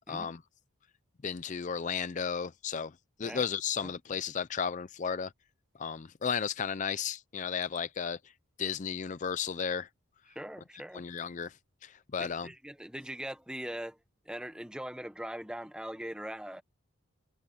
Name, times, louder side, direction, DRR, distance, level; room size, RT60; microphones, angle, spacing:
voice 1, 0.1-0.4 1.2-2.9 3.2-5.3 5.8-8.2 8.6-9.9 10.9-11.5 11.8-12.5, left 6 dB, 35° left, 0.4 m, -34 dB
voice 2, 10.3-11.0 12.2-14.0 14.2-16.6, right 1 dB, 5° right, 0.9 m, -41 dB
head